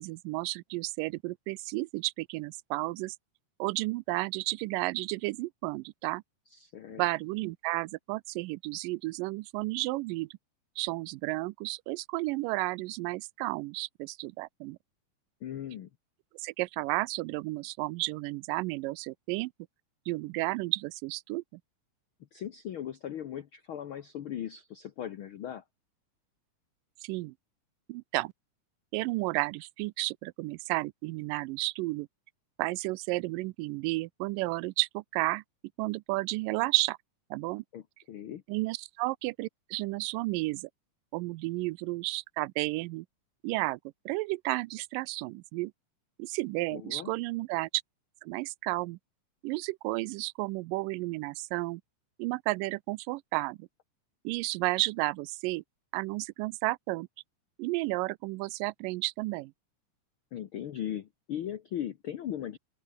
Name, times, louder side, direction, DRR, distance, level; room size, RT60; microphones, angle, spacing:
voice 1, 0.0-3.2 3.6-6.2 7.0-10.3 10.8-14.8 16.3-19.5 20.1-21.6 27.0-27.3 27.9-28.3 28.9-32.1 32.6-35.4 35.8-37.0 37.3-37.6 38.5-40.7 41.1-43.1 43.4-43.8 44.1-45.7 46.2-47.7 48.2-49.0 49.4-51.8 52.2-53.7 54.2-55.6 55.9-57.1 57.6-59.5, right 22 dB, 90° right, 2.2 m, -32 dB
voice 2, 6.5-7.0 15.4-15.9 22.3-25.6 37.7-38.4 46.7-47.1 60.3-62.6, left 10 dB, 80° left, 1.2 m, -38 dB
open air
omnidirectional pair, 3.8 m